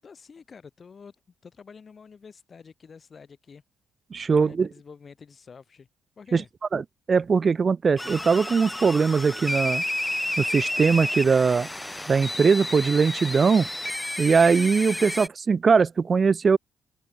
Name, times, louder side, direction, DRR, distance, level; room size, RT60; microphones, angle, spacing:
voice 1, 0.0-3.6 4.2-5.9 6.2-6.5, left 5 dB, 40° left, 7.3 m, -48 dB
voice 2, 4.1-4.7 6.3-6.4 6.7-6.8 7.1-9.8 10.4-11.7 12.1-13.7 14.2-16.6, right 5 dB, 40° right, 0.7 m, -21 dB
sound 1, 8.0-15.3, left 1 dB, 10° left, 0.4 m, -31 dB
cardioid pair, 90°, 0 cm